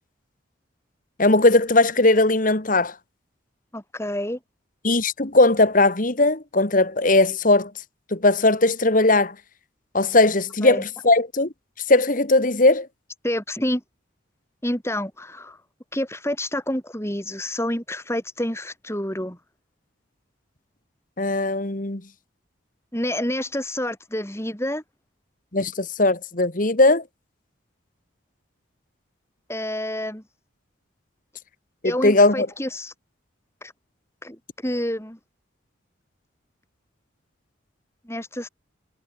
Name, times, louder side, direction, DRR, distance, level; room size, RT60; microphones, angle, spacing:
voice 1, 1.2-2.9 4.8-7.7 8.1-9.3 9.9-11.5 11.9-12.9 21.2-22.0 25.5-27.0 31.8-32.5, left 2 dB, 40° left, 1.6 m, -18 dB
voice 2, 3.7-4.4 10.6-10.8 13.2-13.8 14.6-15.6 15.9-19.4 22.9-24.8 29.5-30.2 31.8-32.9 33.6-33.7 34.2-35.2 38.0-38.5, left 1 dB, 15° left, 5.6 m, -28 dB
head